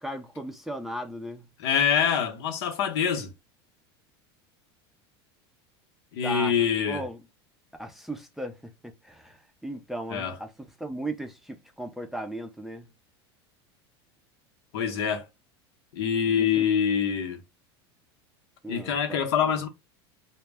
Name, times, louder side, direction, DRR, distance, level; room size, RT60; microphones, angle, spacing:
voice 1, 0.0-1.5 6.2-6.5 6.9-7.2 7.8-12.9 16.3-16.7 18.6-19.6, right 1 dB, ahead, 0.4 m, -37 dB
voice 2, 1.6-3.3 6.1-7.0 10.1-10.4 14.7-15.3 15.9-17.4 18.7-19.7, left 7 dB, 75° left, 0.7 m, -25 dB
2.1 x 2.1 x 3.4 m
supercardioid pair, 110°, 14 cm